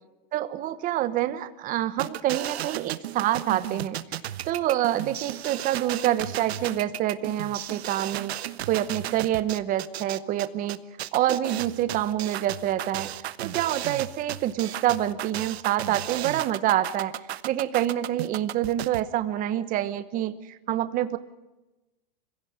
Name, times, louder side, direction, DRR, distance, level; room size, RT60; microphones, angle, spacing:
voice 1, 0.3-4.0 4.4-8.3 8.7-10.8 11.1-13.1 13.4-17.1 17.4-21.2, right 12 dB, 25° right, 13 dB, 1.2 m, -26 dB
sound 1, 2.0-19.0, right 13 dB, 90° right, 1.2 m, -34 dB
25.0 x 16.5 x 9.4 m, 1.0 s
supercardioid pair, 160°, 31 cm